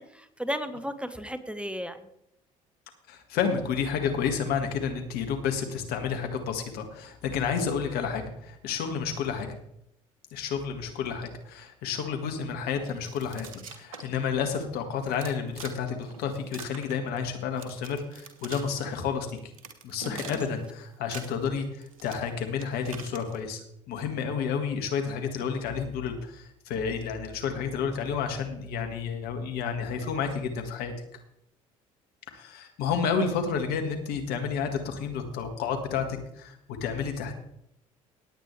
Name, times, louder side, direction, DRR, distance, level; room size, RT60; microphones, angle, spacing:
voice 1, 0.0-2.0 20.0-20.4, equal, 5° right, 11 dB, 1.2 m, -35 dB
voice 2, 3.1-9.5 10.3-13.5 13.8-19.5 19.8-23.6 23.9-30.9 32.3-37.3, left 6 dB, 65° left, 5 dB, 1.9 m, -30 dB
sound 1, 12.8-14.2 14.5-14.6 15.0-15.8 16.0-17.3 17.6-19.0 19.4-20.7 20.9-23.4, right 5 dB, 85° right, 1.3 m, -44 dB
17.5 x 8.8 x 3.4 m, 0.79 s
hypercardioid pair, 60°, 17 cm